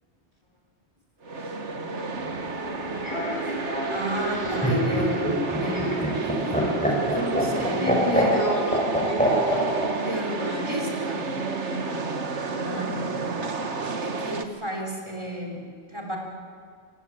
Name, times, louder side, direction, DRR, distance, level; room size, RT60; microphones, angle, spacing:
sound 1, 1.2-14.5, right 4 dB, 80° right, 1.9 m, -31 dB
voice 1, 1.4-2.2 7.8-10.8 11.6-12.2 12.5-13.0, equal, 40° left, -1 dB, 4.1 m, -34 dB
Human voice / Subway metro underground, 2.1-7.6, equal, 25° left, 6.9 m, -33 dB
voice 2, 3.9-8.3 10.1-11.3 12.5-13.1 14.0-15.6 15.9-16.2, equal, 25° right, 1 dB, 4.2 m, -32 dB
Laughter, 4.2-9.9 11.2-11.8, equal, 5° left, 7.2 m, -25 dB
26.5 x 24.0 x 8.7 m, 2.1 s
omnidirectional pair, 1.2 m